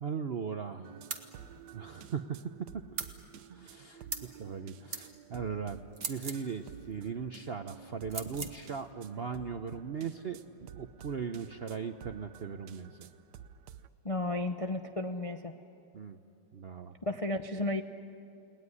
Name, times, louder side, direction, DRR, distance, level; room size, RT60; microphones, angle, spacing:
voice 1, 0.0-1.0 1.7-2.4 2.7-2.8 3.5-4.1 4.4-5.8 6.1-10.4 10.8-13.1 15.9-16.2 16.5-17.0, right 6 dB, 55° right, 7 dB, 0.7 m, -38 dB
sound 1, 0.8-13.9, right 9 dB, 70° right, 1.4 m, -52 dB
sound 2, 1.1-1.3 3.0-3.2 4.1-4.3 4.9-5.1 5.9-6.5 8.1-8.6, right 4 dB, 35° right, 1.5 m, -38 dB
voice 2, 14.0-15.5 17.1-17.8, left 2 dB, 40° left, 5 dB, 0.5 m, -33 dB
30.0 x 19.0 x 9.8 m, 2.7 s
omnidirectional pair, 1.9 m